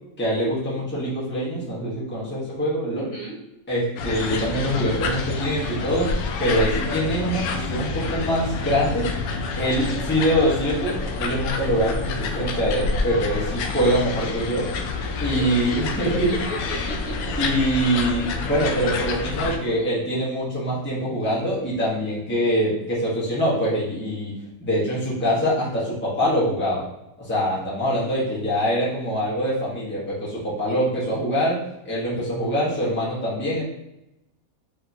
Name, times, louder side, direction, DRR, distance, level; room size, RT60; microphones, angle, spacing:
voice 1, 0.2-3.1 3.7-6.1 6.4-9.1 9.6-14.7 15.2-16.3 17.4-24.3 24.6-26.8 27.2-31.6 31.8-33.6, equal, 10° left, -9 dB, 1.1 m, -24 dB
voice 2, 2.9-3.4 15.3-15.6 16.1-17.8 30.7-30.9, left 1 dB, 60° left, -6 dB, 1.6 m, -36 dB
sound 1, 4.0-19.6, left 4 dB, 85° left, 1.1 m, -28 dB
5.0 x 2.9 x 2.7 m, 0.88 s
omnidirectional pair, 1.5 m